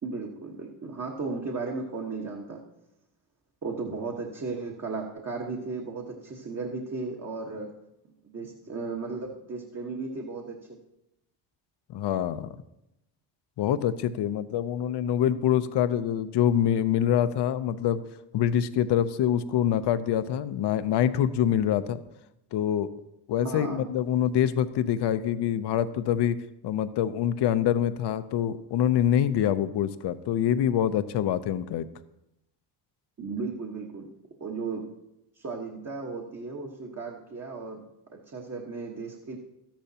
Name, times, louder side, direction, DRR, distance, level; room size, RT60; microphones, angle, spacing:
voice 1, 0.0-2.6 3.6-7.7 8.2-10.6 23.4-23.8 33.2-34.1 34.4-34.9 35.3-37.8 38.1-39.4, right 4 dB, 35° right, -1 dB, 1.3 m, -35 dB
voice 2, 11.9-12.5 13.6-18.0 18.3-22.0 22.5-22.9 23.3-26.4 26.6-31.9, left 10 dB, 60° left, 13 dB, 0.7 m, -25 dB
12.5 x 10.5 x 2.8 m, 0.88 s
supercardioid pair, 75°, 47 cm